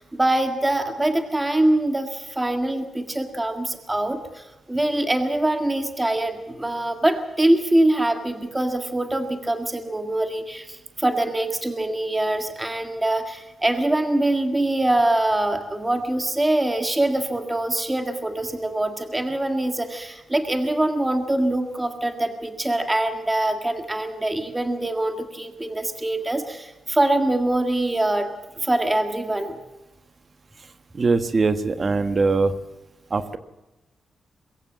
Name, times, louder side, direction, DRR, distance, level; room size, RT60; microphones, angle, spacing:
voice 1, 0.0-28.3 28.6-29.6, right 1 dB, 15° right, 6 dB, 1.8 m, -24 dB
voice 2, 30.9-32.5 33.1-33.4, right 4 dB, 35° right, 10 dB, 1.2 m, -21 dB
22.5 x 15.5 x 7.4 m, 1.1 s
wide cardioid pair, 135°, 0 cm